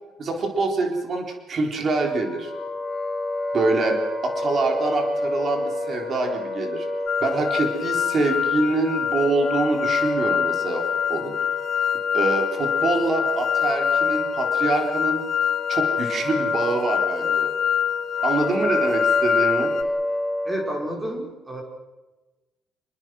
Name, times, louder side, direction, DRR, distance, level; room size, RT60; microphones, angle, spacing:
voice 1, 0.2-2.5 3.5-6.9 7.2-10.8 11.1-11.3 12.1-15.2 15.7-17.5 18.2-19.7, right 3 dB, 35° right, 3 dB, 3.8 m, -25 dB
Wind instrument woodwind instrument, 1.8-20.9, left 1 dB, 5° left, 4.5 m, -29 dB
sound 1, 7.1-19.8, left 9 dB, 45° left, 1.3 m, -25 dB
voice 2, 20.4-21.6, equal, 10° right, 2 dB, 5.2 m, -30 dB
28.0 x 21.0 x 6.2 m, 1.1 s
cardioid pair, 180°, 0 cm